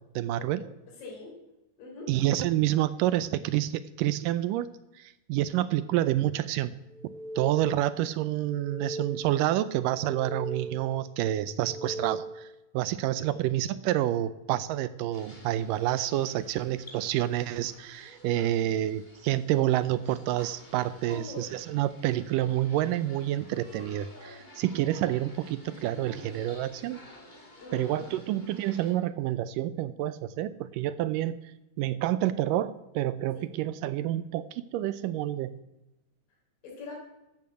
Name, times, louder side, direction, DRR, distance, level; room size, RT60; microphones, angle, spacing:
voice 1, 0.2-0.6 2.1-6.7 7.4-12.5 12.7-27.0 27.7-31.4 31.8-35.6, right 13 dB, 80° right, 15 dB, 2.0 m, -28 dB
sound 1, 6.9-8.0 8.4-9.5 9.9-11.0 11.4-12.5, right 2 dB, 55° left, 3.9 m, -39 dB
sound 2, 15.1-28.9, left 1 dB, 15° left, 2.1 m, -52 dB
voice 2, 21.1-21.5 27.6-28.1 33.4-33.5 36.6-36.9, left 4 dB, 70° left, -3 dB, 5.3 m, -42 dB
13.5 x 10.5 x 7.6 m, 0.94 s
omnidirectional pair, 4.2 m